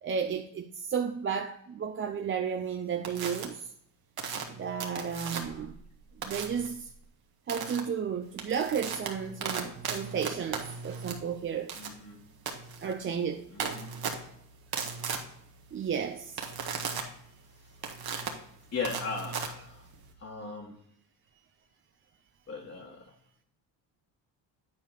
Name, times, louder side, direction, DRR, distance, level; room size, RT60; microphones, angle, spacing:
voice 1, 0.0-3.7 4.5-5.8 6.2-6.9 7.5-11.7 12.8-13.8 15.7-16.4, right 7 dB, 30° right, 0.5 m, -33 dB
sound 1, 3.0-3.5 4.2-5.7 6.2-6.7 7.5-7.8 8.2-20.1, right 6 dB, 55° right, 1.6 m, -37 dB
voice 2, 11.7-12.2 13.5-13.9 18.7-19.9 20.2-20.8 22.5-23.1, left 4 dB, 30° left, 1.5 m, -38 dB
9.5 x 4.7 x 4.0 m
cardioid pair, 105°, 45 cm